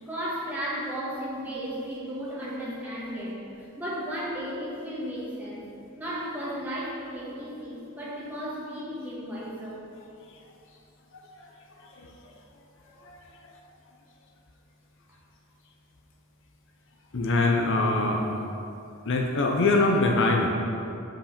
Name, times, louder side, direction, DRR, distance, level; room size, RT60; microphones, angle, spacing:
voice 1, 0.0-3.4 3.8-5.7 6.0-9.9 12.3-12.4 12.9-13.0, equal, 10° right, -8 dB, 1.9 m, -34 dB
voice 2, 11.8-12.1 13.0-13.2 17.1-18.2 19.0-20.5, left 2 dB, 60° left, 1 dB, 0.7 m, -23 dB
6.1 x 5.1 x 6.5 m, 2.7 s
head